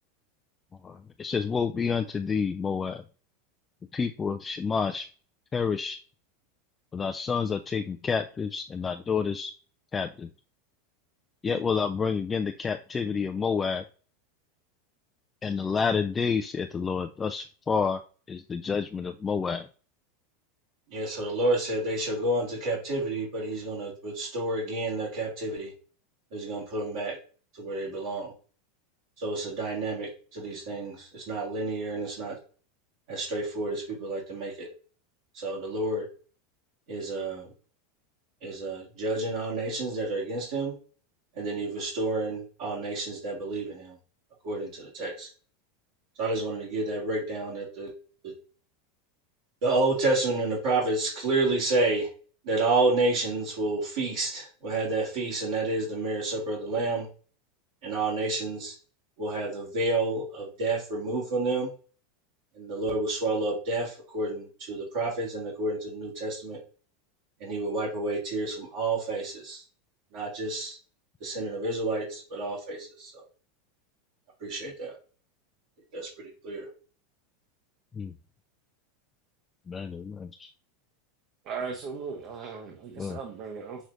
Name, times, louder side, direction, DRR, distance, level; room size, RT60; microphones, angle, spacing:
voice 1, 0.8-3.0 3.9-5.0 5.5-6.0 6.9-9.5 9.9-10.3 11.4-13.8 15.4-18.0 18.3-19.7 78.0-78.1 79.7-80.5 83.0-83.2, left 5 dB, 25° left, 5 dB, 0.4 m, -29 dB
voice 2, 20.9-25.7 26.3-27.2 27.6-28.3 29.2-32.3 33.1-34.7 35.3-36.1 36.9-37.5 38.4-40.7 41.4-44.0 44.4-45.3 46.2-47.9 48.2-48.3 49.6-52.1 52.4-57.1 57.8-58.7 59.2-61.7 62.6-66.6 67.4-69.6 70.1-70.8 71.2-73.2 74.4-74.9 75.9-76.1 76.4-76.7, right 2 dB, 70° right, -5 dB, 1.9 m, -30 dB
voice 3, 81.4-83.9, right 5 dB, 50° right, 2 dB, 0.9 m, -37 dB
6.3 x 3.1 x 2.6 m, 0.38 s
hypercardioid pair, 100°, 0 cm